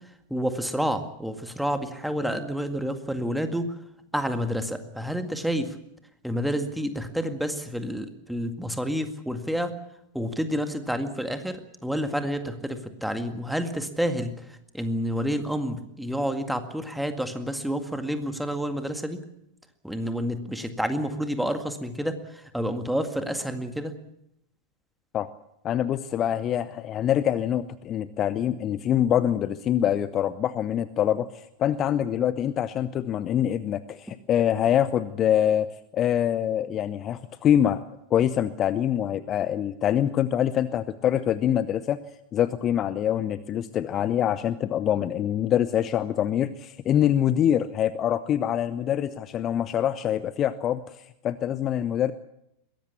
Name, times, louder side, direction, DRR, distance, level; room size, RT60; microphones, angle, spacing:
voice 1, 0.3-3.7 4.1-5.7 6.2-9.7 10.1-19.2 19.8-23.9, equal, ahead, 8 dB, 2.0 m, -29 dB
voice 2, 25.6-35.7 35.9-37.8 38.1-42.0 42.3-51.0 51.2-52.1, left 10 dB, 30° left, 15 dB, 0.7 m, -25 dB
22.0 x 17.0 x 8.4 m, 0.80 s
figure-of-eight pair, 90°, 0 cm